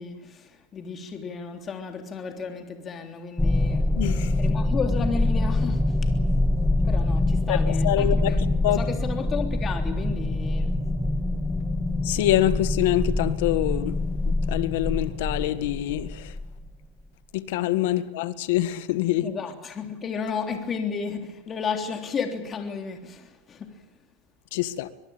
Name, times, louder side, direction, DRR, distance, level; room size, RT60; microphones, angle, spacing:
voice 1, 0.0-3.9 4.4-6.2 6.8-10.8 19.2-23.9, left 5 dB, 30° left, 3.3 m, -33 dB
sound 1, 3.4-16.7, left 2 dB, 5° left, 1.7 m, -25 dB
voice 2, 4.0-4.4 7.5-8.4 8.6-8.8 12.0-14.0 14.3-16.4 17.3-19.3 24.5-24.9, left 14 dB, 75° left, 1.8 m, -25 dB
24.0 x 22.5 x 8.9 m
supercardioid pair, 120°, 0 cm